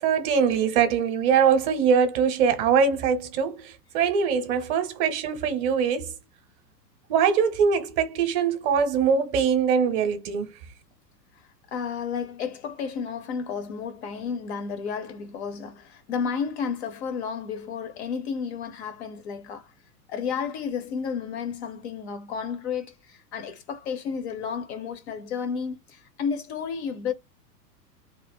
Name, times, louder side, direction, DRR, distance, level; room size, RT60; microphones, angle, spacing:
voice 1, 0.0-6.1 7.1-10.5, right 6 dB, 35° right, 0.8 m, -22 dB
voice 2, 11.7-19.7 20.1-27.1, left 6 dB, 40° left, 0.6 m, -32 dB
2.6 x 2.4 x 3.4 m
figure-of-eight pair, 100°, 50 cm